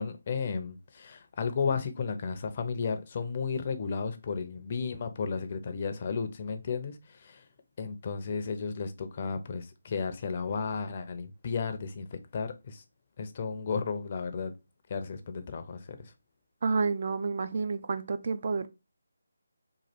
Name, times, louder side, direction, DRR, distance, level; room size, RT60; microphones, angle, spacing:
voice 1, 0.0-7.5 7.8-12.8 13.2-14.5 14.9-16.1, left 5 dB, 35° left, 0.5 m, -33 dB
voice 2, 16.6-18.7, right 4 dB, 45° right, 0.4 m, -29 dB
3.0 x 2.4 x 4.2 m
figure-of-eight pair, 165°, 0 cm